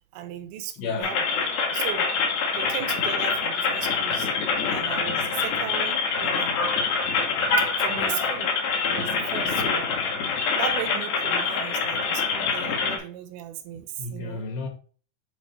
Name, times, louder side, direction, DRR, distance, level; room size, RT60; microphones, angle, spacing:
voice 1, 0.1-1.4 1.7-2.1 2.5-4.3 4.7-6.5 7.6-8.5 8.8-9.9 10.6-14.4, right 10 dB, 80° right, 2.6 m, -36 dB
voice 2, 0.7-1.1 7.3-7.6 7.9-8.4 14.0-14.7, left 4 dB, 80° left, 3.0 m, -33 dB
sound 1, 1.0-13.0, left 5 dB, 65° left, 2.1 m, -25 dB
8.5 x 4.0 x 3.2 m
omnidirectional pair, 4.3 m